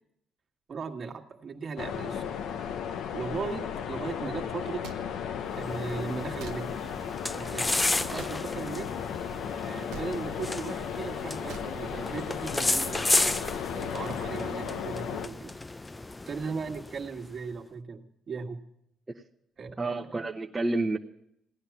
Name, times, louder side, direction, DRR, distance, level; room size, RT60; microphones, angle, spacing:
voice 1, 0.7-2.3 3.1-4.8 5.5-6.7 7.3-8.9 9.6-15.5 16.3-18.6 19.6-20.3, right 5 dB, 50° right, 3 dB, 1.7 m, -38 dB
sound 1, 1.8-15.3, left 8 dB, 75° left, 0.9 m, -35 dB
sound 2, 4.8-5.0 6.4-6.6 8.1-8.4 9.9-10.1 11.5-11.7, right 8 dB, 80° right, 0.8 m, -41 dB
sound 3, 5.5-17.3, left 2 dB, 20° left, 0.5 m, -33 dB
voice 2, 19.8-21.0, right 2 dB, 25° right, 1 dB, 0.9 m, -30 dB
17.0 x 10.5 x 7.2 m, 0.77 s
supercardioid pair, 75°, 0 cm